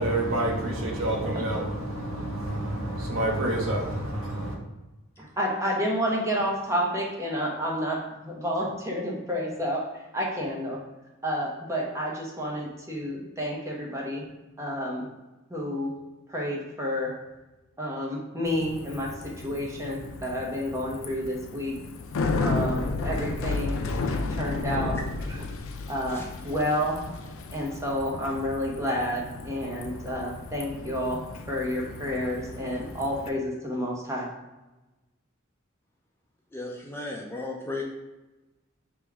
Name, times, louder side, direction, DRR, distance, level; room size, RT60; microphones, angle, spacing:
voice 1, 0.0-4.6, right 1 dB, 70° right, 0.9 m, -28 dB
voice 2, 5.2-8.0 8.2-10.8 11.2-14.2 14.6-15.1 15.5-15.9 16.3-17.1 17.8-19.1 19.4-21.7 22.4-23.8 24.3-25.0 25.3-25.4 25.9-27.0 27.5-34.3, equal, 15° right, 0.9 m, -30 dB
Bicycle, 18.5-33.3, left 3 dB, 70° left, 0.4 m, -33 dB
voice 3, 36.5-37.8, left 2 dB, 10° left, 0.4 m, -35 dB
3.5 x 3.0 x 4.7 m
head